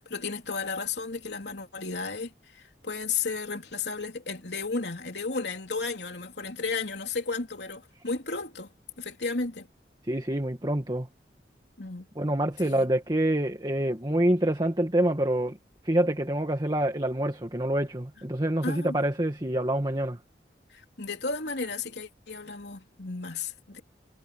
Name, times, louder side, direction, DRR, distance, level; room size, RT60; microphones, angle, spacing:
voice 1, 0.1-8.7 9.0-9.7 11.8-12.1 12.6-12.9 18.6-19.0 20.7-23.8, left 4 dB, 75° left, 3.2 m, -33 dB
voice 2, 10.1-11.1 12.2-15.6 15.8-20.2, right 1 dB, 25° right, 1.9 m, -26 dB
head